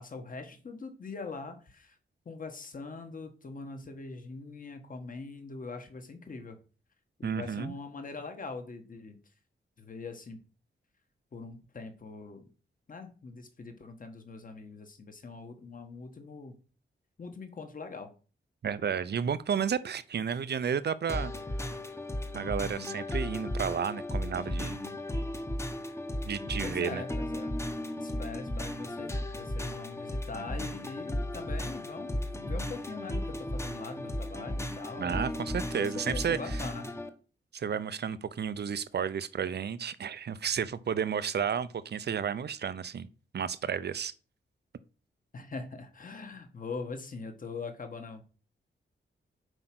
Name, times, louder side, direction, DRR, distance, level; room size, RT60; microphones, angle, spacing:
voice 1, 0.0-2.0 2.2-6.6 7.2-9.2 9.8-10.4 11.3-12.5 12.9-16.6 17.2-18.1 26.6-27.5 28.0-35.1 35.8-36.9 45.3-48.2, left 4 dB, 40° left, 1.5 m, -42 dB
voice 2, 7.2-7.7 18.6-21.3 22.3-24.8 26.2-27.0 35.0-36.4 37.5-43.1 43.3-44.1, right 7 dB, 55° right, 0.6 m, -32 dB
sound 1, 21.1-37.1, left 1 dB, 15° left, 1.0 m, -35 dB
7.9 x 5.0 x 6.0 m
wide cardioid pair, 160°, 21 cm